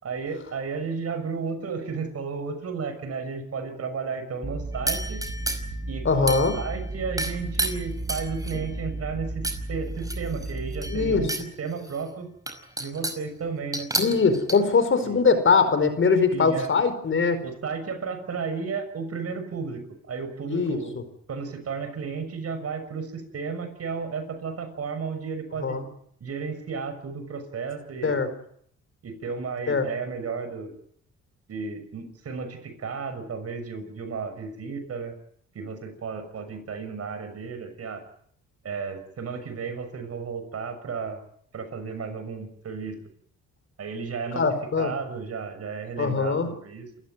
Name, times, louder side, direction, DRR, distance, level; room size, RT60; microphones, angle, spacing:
voice 1, 0.0-5.2 5.9-12.3 12.8-13.9 15.0-15.2 16.3-16.7 17.4-20.9 21.3-25.8 26.2-28.2 29.0-30.7 31.5-35.1 35.5-38.0 38.6-41.2 41.5-43.0 43.8-44.4 44.8-46.9, right 5 dB, 55° right, 8 dB, 6.5 m, -33 dB
sound 1, 4.4-11.3, right 2 dB, 30° right, 5.4 m, -34 dB
sound 2, 4.9-5.8 6.3-6.8 7.2-8.7 9.4-9.6 10.0-11.5 11.9-12.0 12.5-13.3 13.7-14.6, right 1 dB, 10° right, 5.3 m, -30 dB
voice 2, 6.0-6.6 10.9-11.3 14.0-17.4 20.5-20.8 25.6-25.8 28.0-28.3 29.7-29.8 44.3-44.9 46.0-46.5, left 4 dB, 40° left, 11 dB, 4.8 m, -22 dB
28.0 x 15.0 x 9.2 m, 0.67 s
cardioid pair, 90°, 30 cm